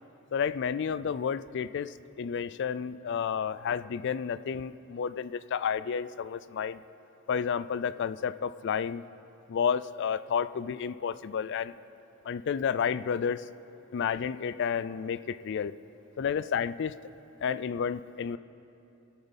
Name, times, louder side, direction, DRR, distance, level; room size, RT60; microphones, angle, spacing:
voice 1, 0.3-6.8 7.3-9.0 9.5-11.7 12.2-13.4 13.9-15.7 16.2-16.9 17.4-18.4, left 7 dB, 55° left, 16 dB, 0.3 m, -31 dB
24.5 x 8.7 x 4.1 m, 3.0 s
head